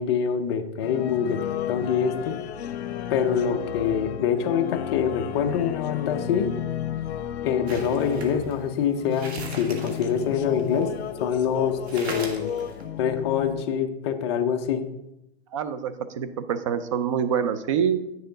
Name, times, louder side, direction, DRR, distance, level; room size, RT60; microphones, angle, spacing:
voice 1, 0.0-2.4 3.1-6.5 7.4-10.9 11.2-12.5 13.0-14.8, left 7 dB, 25° left, 6 dB, 0.5 m, -25 dB
sound 1, 0.8-13.7, left 10 dB, 90° left, 0.6 m, -33 dB
harness rustle, 7.7-11.2 11.5-11.6 11.9-12.8, right 3 dB, 80° right, 1.7 m, -39 dB
voice 2, 15.5-18.0, right 8 dB, 30° right, 11 dB, 0.4 m, -26 dB
9.4 x 6.7 x 3.9 m, 0.90 s
hypercardioid pair, 155°, 32 cm